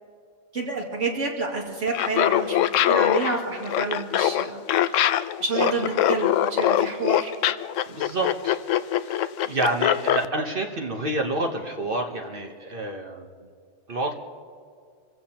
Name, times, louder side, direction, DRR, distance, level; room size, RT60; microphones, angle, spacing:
voice 1, 0.5-7.3, right 3 dB, 75° right, -1 dB, 2.7 m, -29 dB
Laughter, 1.9-10.3, left 11 dB, 85° left, 0.9 m, -22 dB
voice 2, 7.9-13.5 13.9-14.1, right 2 dB, 50° right, 2 dB, 1.2 m, -29 dB
26.5 x 15.5 x 2.9 m, 2.3 s
omnidirectional pair, 1.3 m